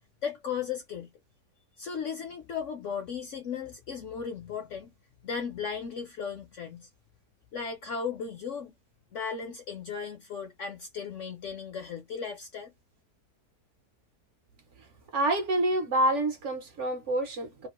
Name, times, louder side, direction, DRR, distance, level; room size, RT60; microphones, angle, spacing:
voice 1, 0.2-1.1 1.8-4.9 5.2-6.9 7.5-8.7 9.1-12.7, left 6 dB, 65° left, 0.8 m, -36 dB
voice 2, 15.1-17.7, right 1 dB, 60° right, 0.9 m, -27 dB
3.0 x 2.4 x 2.9 m
omnidirectional pair, 1.7 m